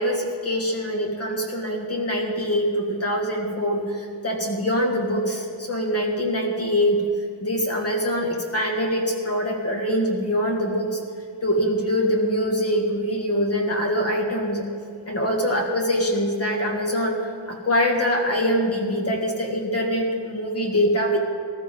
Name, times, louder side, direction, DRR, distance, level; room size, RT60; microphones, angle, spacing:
voice 1, 0.0-7.0 7.4-11.0 11.4-14.7 15.1-17.2 17.5-21.2, equal, 30° left, 0 dB, 2.0 m, -24 dB
19.5 x 13.5 x 3.8 m, 2.3 s
wide cardioid pair, 165°, 46 cm